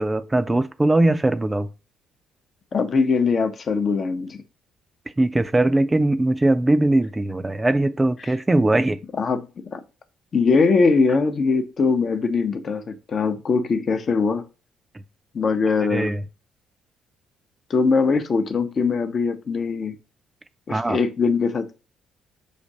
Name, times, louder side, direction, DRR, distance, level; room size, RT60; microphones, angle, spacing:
voice 1, 0.0-1.7 5.2-9.0 15.9-16.2 20.7-21.0, right 2 dB, 20° right, 0.4 m, -20 dB
voice 2, 2.7-4.4 9.2-9.8 10.3-14.4 15.3-16.1 17.7-20.0 20.7-21.7, left 4 dB, 45° left, 0.7 m, -21 dB
5.1 x 2.5 x 4.0 m
figure-of-eight pair, 45°, 0 cm